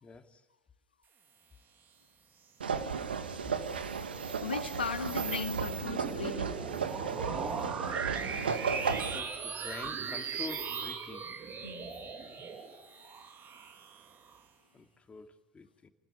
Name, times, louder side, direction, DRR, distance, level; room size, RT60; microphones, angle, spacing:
voice 1, 0.0-0.4 3.4-3.5 8.8-11.3 14.7-15.9, left 4 dB, 25° left, 2.8 m, -47 dB
sound 1, 2.6-9.2, right 5 dB, 85° right, 1.8 m, -35 dB
sound 2, 3.5-14.4, right 6 dB, 40° right, 3.6 m, -39 dB
voice 2, 4.4-6.6 11.6-11.9 13.0-13.1, left 5 dB, 90° left, 2.2 m, -37 dB
29.5 x 20.0 x 9.7 m
hypercardioid pair, 70°, 5 cm